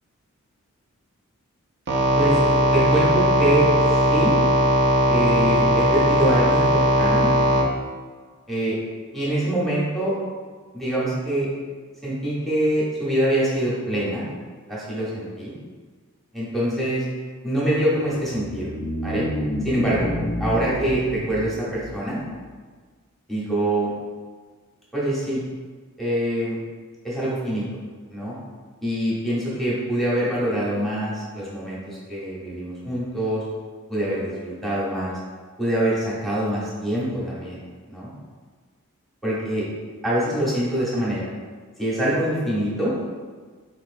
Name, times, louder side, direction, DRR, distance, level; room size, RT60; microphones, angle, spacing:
sound 1, 1.9-7.6, equal, 50° right, 0.5 m, -19 dB
voice 1, 2.7-4.4 5.1-7.3 8.5-8.8 9.1-10.1 10.7-11.5 12.0-14.2 14.7-15.5 16.3-17.0 17.4-18.7 19.0-19.3 19.6-20.1 20.4-22.2 23.3-23.9 24.9-25.4 26.0-26.6 27.0-27.6 28.1-28.4 28.8-33.4 33.9-35.2 35.6-37.6 37.9-38.1 39.2-39.7 40.0-41.3 41.8-42.9, right 1 dB, ahead, -8 dB, 0.8 m, -24 dB
sound 2, 18.0-22.5, left 1 dB, 25° left, 0.3 m, -30 dB
4.0 x 2.9 x 2.5 m, 1.5 s
head